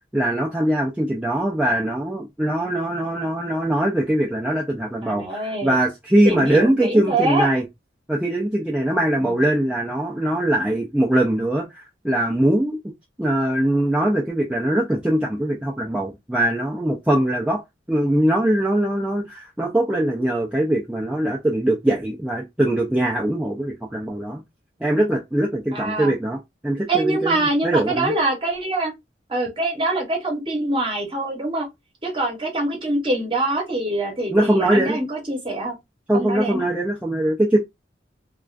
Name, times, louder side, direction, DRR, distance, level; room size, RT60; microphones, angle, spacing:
voice 1, 0.1-7.6 8.1-12.8 13.2-17.6 17.9-24.4 24.8-26.4 26.6-28.1 34.3-35.0 36.1-37.6, right 1 dB, 5° right, 0.4 m, -21 dB
voice 2, 5.0-5.8 6.2-7.5 9.2-9.4 25.7-26.1 26.9-28.9 29.3-31.7 32.0-35.8 36.1-36.7, right 2 dB, 30° right, 0.9 m, -24 dB
2.3 x 2.3 x 2.3 m
head